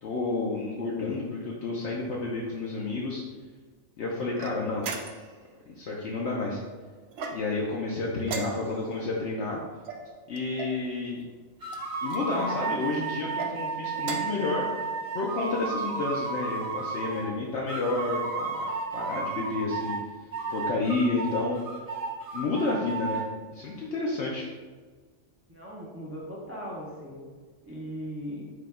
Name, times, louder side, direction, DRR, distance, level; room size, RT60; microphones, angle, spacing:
voice 1, 0.0-3.2 4.0-4.8 5.7-6.6 7.3-9.6 10.3-11.2 12.0-20.0 20.5-21.6 22.3-23.2 23.5-24.5, left 3 dB, 65° left, -3 dB, 0.9 m, -30 dB
sound 1, 4.4-5.4 7.1-7.7 8.2-9.0 9.8-10.8 11.7-12.2 13.2-13.5 14.0-14.5, right 4 dB, 65° right, 0.7 m, -37 dB
sound 2, 11.6-17.3 17.7-20.0 20.3-23.2, right 4 dB, 30° right, 0.9 m, -33 dB
voice 2, 25.5-27.2 27.6-28.4, equal, 15° right, -4 dB, 0.5 m, -38 dB
4.8 x 2.3 x 4.7 m, 1.5 s
omnidirectional pair, 1.3 m